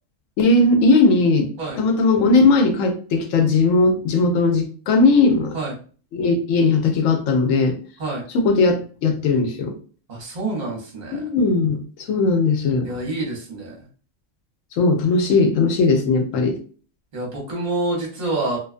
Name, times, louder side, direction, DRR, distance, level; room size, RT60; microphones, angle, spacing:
voice 1, 0.4-1.5 1.8-5.6 6.1-7.8 8.3-9.7 11.1-11.8 12.1-12.9 14.8-16.6, left 3 dB, 85° left, 5 dB, 0.9 m, -18 dB
voice 2, 10.1-11.2 12.8-13.9 17.1-18.6, right 2 dB, 40° right, -3 dB, 0.9 m, -27 dB
2.4 x 2.2 x 2.4 m, 0.40 s
omnidirectional pair, 1.3 m